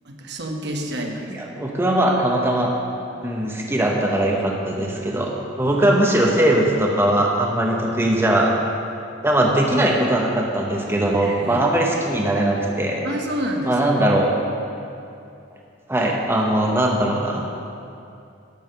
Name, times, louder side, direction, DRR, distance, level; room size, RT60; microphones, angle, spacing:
voice 1, 0.0-1.3 11.2-11.6 13.0-13.8, equal, 60° right, 2 dB, 1.1 m, -28 dB
voice 2, 1.3-2.7 3.2-5.3 5.6-8.5 9.2-13.1 13.7-14.3 15.9-17.4, right 1 dB, 10° right, -1 dB, 0.9 m, -20 dB
12.0 x 7.1 x 5.6 m, 2.6 s
head